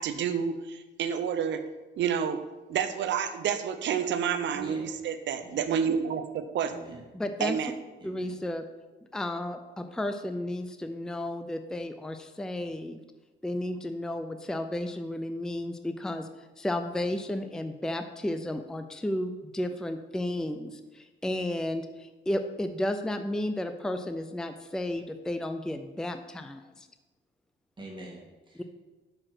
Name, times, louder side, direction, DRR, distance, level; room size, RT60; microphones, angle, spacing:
voice 1, 0.0-1.6 2.0-2.4 2.7-6.7 7.4-7.7, right 7 dB, 70° right, 10 dB, 0.7 m, -29 dB
voice 2, 4.5-4.9 5.4-6.0 6.6-7.1 8.0-8.4 27.8-28.6, right 1 dB, 25° right, -3 dB, 1.9 m, -45 dB
voice 3, 7.1-7.6 8.0-8.6 9.1-13.0 13.4-16.3 16.6-26.9, left 1 dB, 5° left, 8 dB, 0.4 m, -33 dB
6.0 x 4.9 x 6.0 m, 1.2 s
cardioid pair, 90°, 20 cm